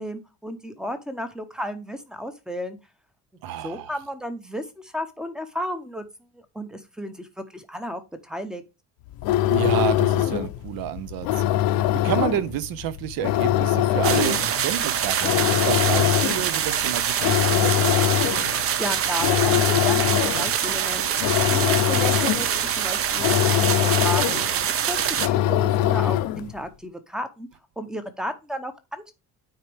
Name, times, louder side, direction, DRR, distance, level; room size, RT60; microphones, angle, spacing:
voice 1, 0.0-2.8 3.6-6.1 6.3-8.6 18.8-27.5 27.8-29.1, equal, ahead, 0.7 m, -33 dB
voice 2, 3.4-3.9 9.5-11.4 11.9-17.9, right 12 dB, 75° right, 0.8 m, -29 dB
sound 1, 9.1-26.6, left 13 dB, 75° left, 0.7 m, -23 dB
sound 2, 14.0-25.3, right 9 dB, 40° right, 0.6 m, -25 dB
9.1 x 4.3 x 3.4 m
cardioid pair, 170°, 36 cm